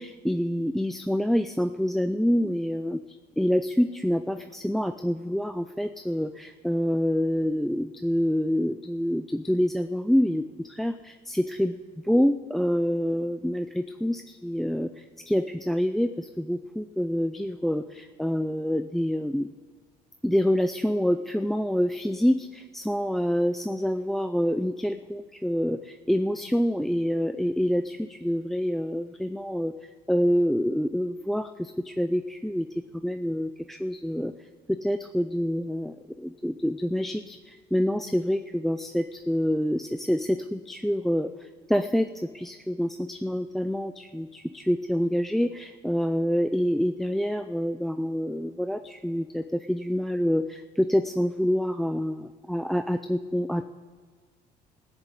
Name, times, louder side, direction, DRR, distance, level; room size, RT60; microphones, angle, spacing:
voice 1, 0.0-3.0 3.4-11.8 12.0-19.5 20.2-29.7 30.1-32.7 32.9-34.3 34.7-53.6, equal, ahead, 9 dB, 0.3 m, -27 dB
15.5 x 7.1 x 8.3 m, 1.5 s
cardioid pair, 110°, 17 cm